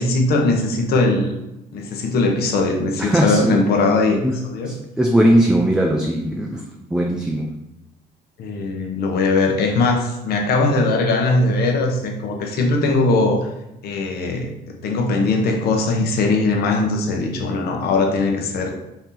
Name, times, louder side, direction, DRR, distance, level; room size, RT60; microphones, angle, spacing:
voice 1, 0.0-1.4 1.7-4.2 4.4-4.7 8.4-13.5 13.8-18.7, left 3 dB, 70° left, 2 dB, 0.9 m, -20 dB
voice 2, 3.0-3.6 4.2-4.4 4.7-7.6, right 1 dB, 5° right, 1 dB, 0.4 m, -19 dB
4.6 x 2.8 x 3.8 m, 0.91 s
cardioid pair, 110°, 17 cm